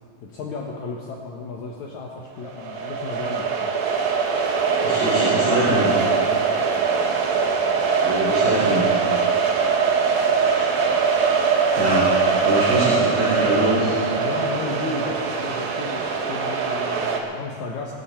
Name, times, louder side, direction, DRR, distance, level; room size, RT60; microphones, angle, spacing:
voice 1, 0.2-3.7 14.2-17.9, left 4 dB, 65° left, -1 dB, 2.2 m, -33 dB
sound 1, 2.5-17.2, right 5 dB, 85° right, 3.1 m, -22 dB
voice 2, 4.5-6.1 8.0-8.9 10.2-10.7 11.8-12.1 12.4-14.0, right 1 dB, 35° right, -10 dB, 4.6 m, -24 dB
24.0 x 11.0 x 4.4 m, 2.3 s
omnidirectional pair, 4.0 m